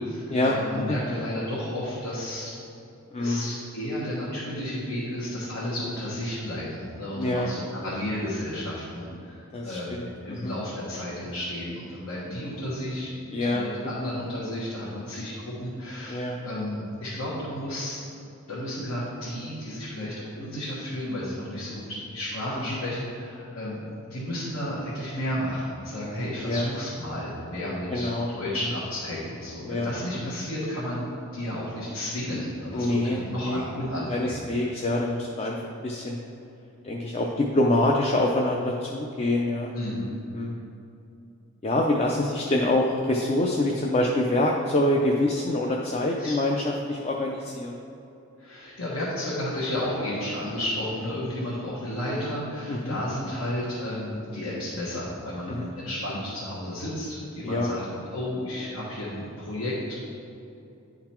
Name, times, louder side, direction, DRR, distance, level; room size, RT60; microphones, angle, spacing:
voice 1, 0.0-2.5 3.2-18.0 18.5-34.4 39.7-40.1 46.2-46.3 48.4-57.8 58.1-59.9, left 1 dB, 75° left, -8 dB, 1.4 m, -32 dB
voice 2, 3.1-3.6 7.2-7.5 9.5-10.5 13.3-14.1 16.1-16.4 22.7-22.8 26.4-26.7 27.9-28.3 29.6-29.9 30.2-30.3 32.7-33.6 34.1-36.2 36.8-40.1 40.3-40.6 41.6-47.8 52.7-53.0 55.5-55.7 57.4-57.7, left 1 dB, 30° left, -1 dB, 0.4 m, -26 dB
10.0 x 3.9 x 4.4 m, 2.7 s
head